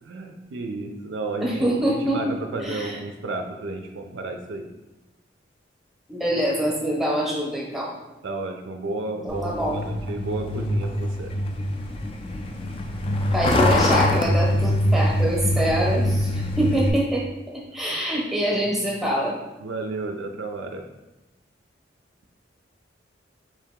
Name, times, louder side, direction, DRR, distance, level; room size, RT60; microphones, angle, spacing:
voice 1, 0.0-4.7 8.2-11.4 15.6-16.6 17.9-18.0 19.6-20.8, right 3 dB, 70° right, 4 dB, 0.4 m, -33 dB
voice 2, 1.4-2.2 2.6-3.0 6.1-7.9 9.2-9.8 13.3-17.2 17.5-19.3, equal, ahead, -3 dB, 0.8 m, -25 dB
Truck, 9.3-16.9, left 1 dB, 30° left, 0.4 m, -23 dB
4.7 x 2.8 x 3.5 m, 1.0 s
head